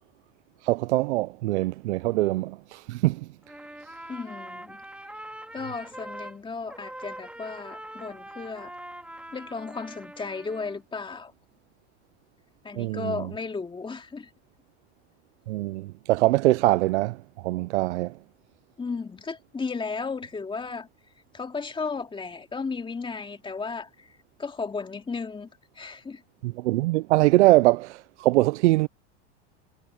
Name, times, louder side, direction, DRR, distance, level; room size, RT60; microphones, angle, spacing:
voice 1, 0.6-3.3 12.7-13.3 15.5-18.2 26.4-28.9, right 19 dB, 90° right, 0.6 m, -23 dB
Trumpet, 3.4-6.4 6.7-10.8, right 1 dB, 5° right, 2.4 m, -43 dB
voice 2, 4.1-4.8 5.5-8.7 9.3-11.3 12.6-14.3 18.8-20.9 21.3-25.5 25.8-26.2, left 4 dB, 15° left, 2.7 m, -34 dB
supercardioid pair, 120°, 34 cm